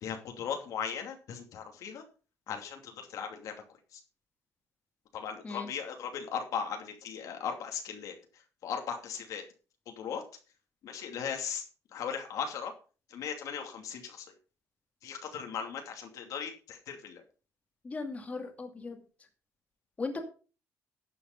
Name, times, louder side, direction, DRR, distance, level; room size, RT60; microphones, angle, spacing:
voice 1, 0.0-2.0 2.5-3.6 3.9-4.0 5.1-9.4 9.9-10.2 10.8-11.6 11.9-12.7 13.1-14.3 15.0-17.2, left 7 dB, 70° left, 4 dB, 2.6 m, -38 dB
voice 2, 17.8-19.0 20.0-20.2, left 3 dB, 25° left, 3 dB, 2.4 m, -37 dB
12.0 x 7.1 x 5.4 m, 0.36 s
cardioid pair, 130°, 6 cm